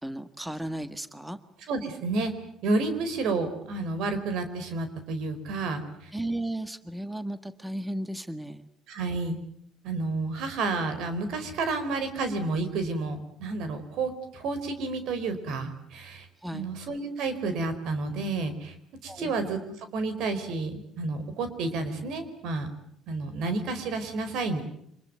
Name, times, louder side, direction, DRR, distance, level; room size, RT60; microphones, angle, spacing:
voice 1, 0.0-1.4 6.1-8.7 16.4-16.7 19.1-19.3, right 1 dB, 5° right, 11 dB, 1.7 m, -35 dB
voice 2, 1.7-2.3 2.6-6.1 8.9-9.4 9.8-16.3 16.5-18.7 19.0-22.7 23.1-24.6, right 3 dB, 75° right, 10 dB, 4.6 m, -30 dB
26.5 x 21.0 x 9.4 m, 0.70 s
supercardioid pair, 80°, 0 cm